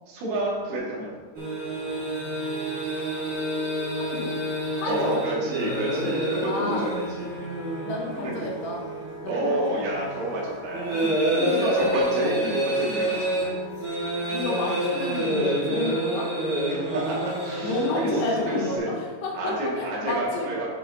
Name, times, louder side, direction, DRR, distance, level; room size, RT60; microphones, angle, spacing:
voice 1, 0.1-1.1 4.9-7.3 8.2-8.5 9.2-13.5 16.7-18.1 18.5-18.9 19.3-20.8, right 1 dB, 80° right, -4 dB, 4.2 m, -29 dB
sound 1, 1.3-18.8, right 1 dB, 35° right, 2.0 m, -28 dB
voice 2, 4.0-4.3 4.8-5.2 6.5-6.9 7.8-8.8 9.2-10.1 11.4-11.8 12.2-12.4 14.3-16.3 17.6-20.5, left 2 dB, 75° left, -1 dB, 3.3 m, -30 dB
9.8 x 8.3 x 2.7 m, 1.5 s
omnidirectional pair, 5.0 m